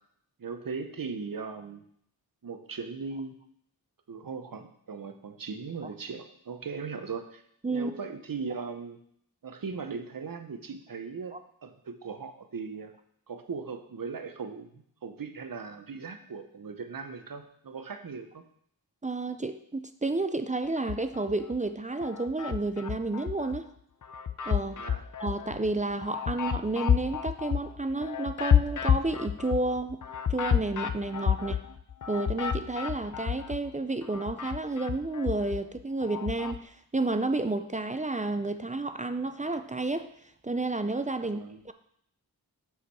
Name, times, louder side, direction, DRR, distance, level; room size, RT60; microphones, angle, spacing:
voice 1, 0.4-1.8 2.4-3.4 4.1-7.4 7.7-9.0 9.4-11.4 11.6-12.9 13.3-18.4 24.7-25.0 31.3-31.6 41.2-41.6, right 5 dB, 60° right, 7 dB, 0.9 m, -38 dB
voice 2, 19.0-23.7 24.5-24.8 25.2-30.0 30.3-31.6 32.1-40.1 40.4-41.7, right 2 dB, 20° right, 9 dB, 0.4 m, -31 dB
sound 1, 20.8-21.6 22.0-23.6 24.0-33.7 34.0-36.6, left 8 dB, 50° left, 0.6 m, -30 dB
6.9 x 4.8 x 4.7 m, 0.69 s
wide cardioid pair, 50°, 38 cm